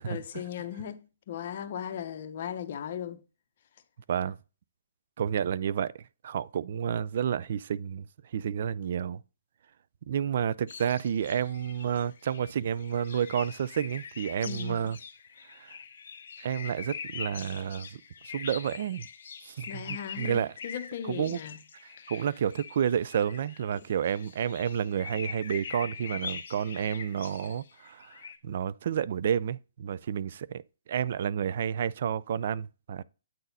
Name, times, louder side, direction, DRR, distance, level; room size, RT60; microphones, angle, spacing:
voice 1, 0.0-3.2 14.4-14.9 19.7-21.6 22.0-22.3, left 9 dB, 45° left, 0.9 m, -38 dB
voice 2, 5.2-8.1 8.3-9.2 10.1-15.0 15.5-15.8 16.4-18.0 18.3-19.1 19.4-20.5 21.1-21.4 22.1-30.6 30.9-33.0, right 8 dB, 50° right, 0.4 m, -30 dB
sound 1, 10.7-28.4, left 6 dB, 60° left, 1.4 m, -43 dB
9.0 x 4.0 x 4.0 m
hypercardioid pair, 155°, 0 cm